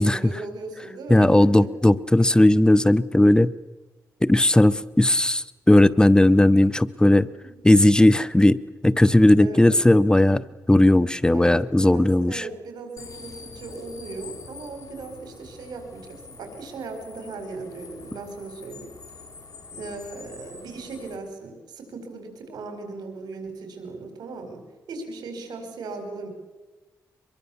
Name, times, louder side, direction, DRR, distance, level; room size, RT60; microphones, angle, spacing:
voice 1, 0.0-1.7 7.4-7.6 9.4-9.7 11.3-11.6 11.8-18.9 19.7-26.3, right 3 dB, 85° right, 6 dB, 4.6 m, -37 dB
voice 2, 1.1-3.5 4.2-7.3 7.6-12.4, left 1 dB, 10° left, 18 dB, 0.7 m, -17 dB
sound 1, 13.0-21.2, left 4 dB, 55° left, 4.4 m, -45 dB
24.0 x 22.5 x 7.1 m, 1.2 s
cardioid pair, 70°, 7 cm